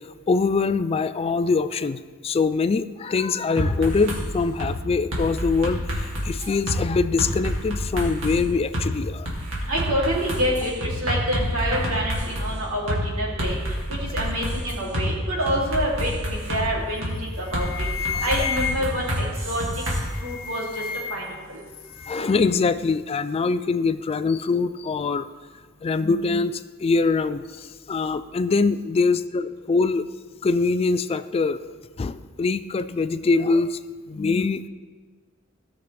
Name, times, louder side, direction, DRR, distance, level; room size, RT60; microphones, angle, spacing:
voice 1, 0.3-9.3 18.1-18.3 22.1-25.3 25.8-30.1 30.4-31.6 32.0-33.8 34.1-34.7, left 4 dB, 30° left, 12 dB, 0.3 m, -23 dB
sound 1, 3.6-4.2 4.6-4.7 5.1-6.8 7.2-8.4 8.7-8.9 9.2-12.5 12.9-13.0 13.4-15.1 15.5-16.6 17.0-17.1 17.5-20.0, equal, 70° right, 2.3 m, -27 dB
voice 2, 9.6-13.5 13.9-17.9 18.2-19.6 20.2-20.8 21.1-21.6, equal, 90° right, -5 dB, 3.1 m, -27 dB
sound 2, 17.0-17.2 17.5-19.1 19.9-21.4 21.7-22.5, left 7 dB, 80° left, 0.7 m, -32 dB
17.0 x 6.1 x 3.4 m, 1.5 s
head